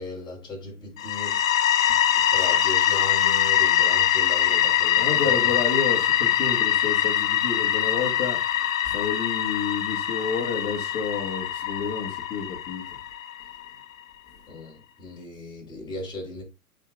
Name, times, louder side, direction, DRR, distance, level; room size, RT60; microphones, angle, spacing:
voice 1, 0.0-1.7 2.1-5.6 14.5-16.4, left 2 dB, 10° left, 3.4 m, -37 dB
sound 1, 1.0-13.7, left 11 dB, 65° left, 0.7 m, -23 dB
voice 2, 5.0-12.8, left 5 dB, 25° left, 1.8 m, -30 dB
8.8 x 5.1 x 2.5 m
figure-of-eight pair, 115°, 44 cm